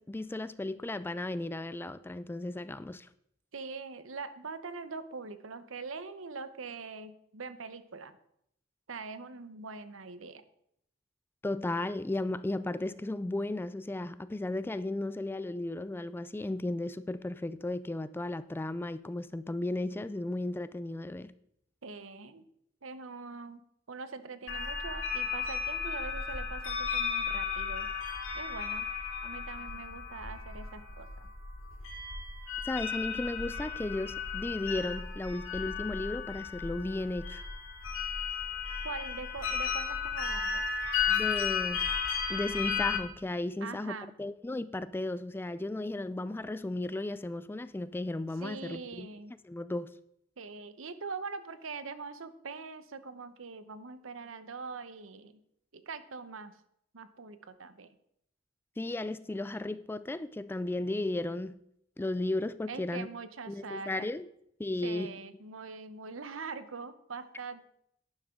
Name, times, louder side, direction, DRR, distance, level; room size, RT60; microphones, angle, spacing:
voice 1, 0.0-3.1 11.4-21.3 32.6-37.4 41.1-41.9 42.3-49.1 49.4-50.0 58.8-61.6 62.0-63.1 63.5-64.3 64.6-65.2, left 2 dB, 10° left, 0.3 m, -35 dB
voice 2, 3.5-8.2 8.9-10.4 21.8-22.4 22.8-23.6 23.9-27.9 28.3-28.9 29.2-31.3 38.8-40.7 43.6-44.2 48.4-49.4 50.4-55.4 55.7-56.5 56.9-57.9 62.7-64.1 64.8-67.7, right 4 dB, 75° right, 0.9 m, -43 dB
sound 1, 24.5-43.0, left 6 dB, 80° left, 2.5 m, -34 dB
11.5 x 10.5 x 3.7 m
head